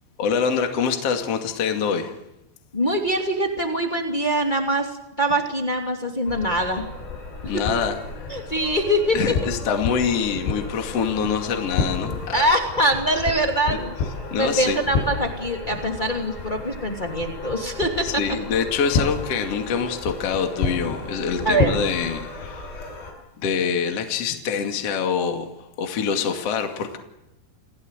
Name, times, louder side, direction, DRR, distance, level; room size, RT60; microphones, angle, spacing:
voice 1, 0.2-2.2 7.5-8.0 8.2-8.3 9.1-12.4 13.7-13.8 14.3-14.8 18.0-22.8 23.4-25.5 25.8-27.0, left 6 dB, 40° left, 4 dB, 2.6 m, -25 dB
voice 2, 2.7-6.9 7.5-7.8 8.3-9.5 12.3-13.9 14.2-18.2 21.4-21.8, right 1 dB, 20° left, 2 dB, 1.4 m, -23 dB
sound 1, 6.2-23.1, left 4 dB, 75° left, 9.3 m, -31 dB
29.5 x 16.5 x 8.2 m, 0.91 s
omnidirectional pair, 5.5 m